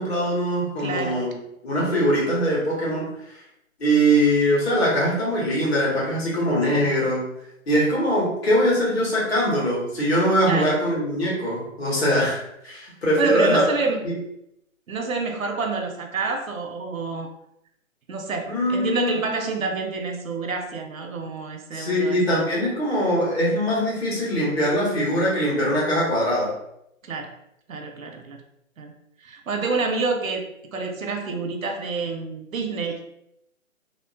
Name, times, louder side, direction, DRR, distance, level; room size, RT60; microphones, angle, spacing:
voice 1, 0.0-1.3 1.6-3.4 3.8-7.2 7.7-12.4 12.6-13.6 14.0-14.1 18.5-19.4 21.7-26.5, equal, 50° left, -6 dB, 1.4 m, -22 dB
voice 2, 0.8-1.3 6.7-6.9 10.4-10.8 13.2-14.0 14.9-17.3 18.1-22.2 25.7-25.9 27.0-27.3 27.7-28.4 28.8-28.9 29.2-33.0, right 4 dB, 75° right, 4 dB, 0.6 m, -28 dB
2.8 x 2.0 x 2.5 m, 0.78 s
figure-of-eight pair, 155°, 41 cm